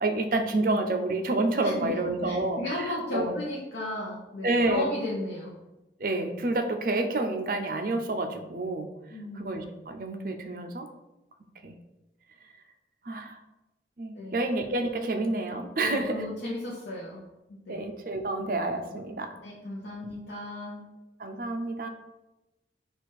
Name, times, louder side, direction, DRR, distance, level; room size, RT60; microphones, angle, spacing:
voice 1, 0.0-3.4 4.4-4.8 6.0-8.9 9.4-10.9 11.6-11.7 13.1-13.4 14.0-16.3 17.7-19.3 21.2-21.9, right 2 dB, 50° right, 6 dB, 0.5 m, -29 dB
voice 2, 1.6-2.0 2.2-5.5 9.1-9.5 14.2-14.4 15.8-17.3 17.7-17.9 19.4-20.9, left 1 dB, 85° left, -5 dB, 0.8 m, -35 dB
4.3 x 2.5 x 4.6 m, 1.0 s
head